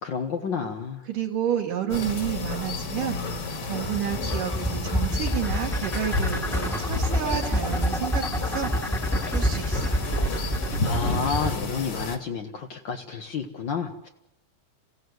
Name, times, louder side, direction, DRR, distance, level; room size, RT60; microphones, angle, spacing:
voice 1, 0.0-1.0 10.8-14.1, left 6 dB, 80° left, 3 dB, 1.0 m, -30 dB
voice 2, 1.1-3.2 3.6-8.7 9.1-10.2, right 9 dB, 70° right, -1 dB, 3.3 m, -30 dB
sound 1, 1.9-12.2, left 3 dB, 45° left, 2.2 m, -31 dB
sound 2, 3.3-11.5, equal, ahead, 1.3 m, -26 dB
28.0 x 16.0 x 8.0 m, 0.85 s
omnidirectional pair, 4.0 m